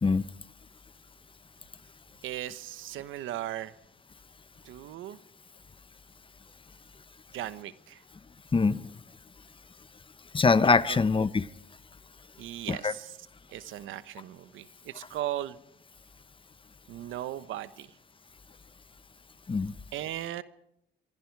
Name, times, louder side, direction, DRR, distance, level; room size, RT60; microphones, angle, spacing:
voice 1, 2.2-3.7 4.6-5.2 7.3-8.0 10.9-11.0 12.4-13.2 13.5-15.6 16.9-17.9 19.9-20.4, right 13 dB, 85° right, 13 dB, 1.1 m, -37 dB
voice 2, 8.5-8.9 10.3-11.5 12.7-12.9 19.5-19.7, left 4 dB, 25° left, 15 dB, 0.9 m, -23 dB
24.5 x 24.0 x 4.8 m, 0.78 s
cardioid pair, 90°, 20 cm